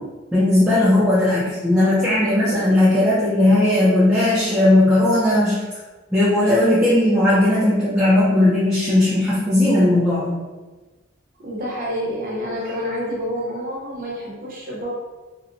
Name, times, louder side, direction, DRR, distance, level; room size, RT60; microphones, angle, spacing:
voice 1, 0.3-5.6 6.1-10.4, left 1 dB, 5° right, -10 dB, 0.4 m, -17 dB
voice 2, 11.4-14.9, equal, 45° right, -4 dB, 0.8 m, -28 dB
2.7 x 2.0 x 2.6 m, 1.2 s
head